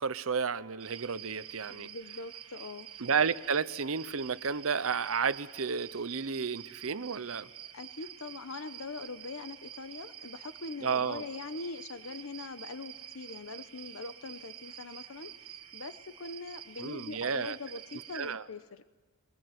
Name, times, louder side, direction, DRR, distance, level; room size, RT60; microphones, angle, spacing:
voice 1, 0.0-1.9 3.0-7.5 10.8-11.2 16.8-17.6 18.1-18.4, right 6 dB, 65° right, 15 dB, 0.7 m, -32 dB
sound 1, 0.8-18.3, right 11 dB, 90° right, 1.5 m, -48 dB
voice 2, 1.7-2.9 7.7-15.3 15.7-18.9, left 3 dB, 70° left, 12 dB, 0.9 m, -42 dB
22.5 x 20.0 x 9.4 m, 1.3 s
head